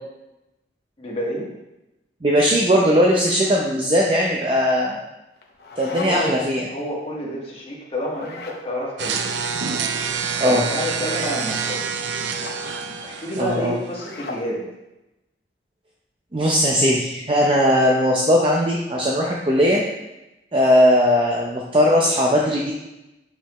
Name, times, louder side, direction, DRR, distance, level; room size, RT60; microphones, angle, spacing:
voice 1, 1.0-1.5 5.9-6.3 6.6-9.4 10.4-11.8 13.0-14.7, equal, 30° left, -4 dB, 1.6 m, -29 dB
voice 2, 2.2-5.0 5.8-6.6 10.4-10.6 13.4-13.7 16.3-19.8 20.5-22.7, equal, 30° right, -3 dB, 0.6 m, -18 dB
sound 1, 5.4-6.4 8.1-8.7 10.2-10.7 12.2-12.6 13.9-14.5, left 3 dB, 60° left, 0.8 m, -36 dB
sound 2, 9.0-14.0, right 5 dB, 80° right, 0.5 m, -27 dB
6.6 x 5.7 x 3.1 m, 0.95 s
head